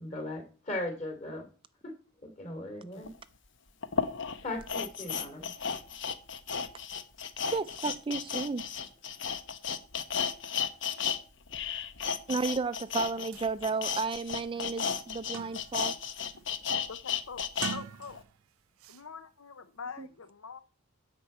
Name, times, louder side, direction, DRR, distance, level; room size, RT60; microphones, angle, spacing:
voice 1, 0.0-1.5 1.8-1.9 2.2-3.1 4.4-5.5, left 1 dB, 35° left, 3.0 m, -38 dB
sound 1, 3.1-3.2 3.8-11.2 11.5-17.8 18.1-18.2, left 7 dB, 60° left, 1.0 m, -33 dB
voice 2, 7.5-8.6 12.3-16.0 20.0-20.1, right 4 dB, 25° right, 0.4 m, -33 dB
sound 2, 13.0-13.1 13.3-13.5 14.0-14.1 14.5-15.9 16.3-16.6 17.4-18.4 18.8-19.0, right 7 dB, 85° right, 0.4 m, -43 dB
voice 3, 16.9-18.2 18.9-20.6, left 5 dB, 85° left, 0.8 m, -44 dB
10.5 x 4.5 x 7.8 m
head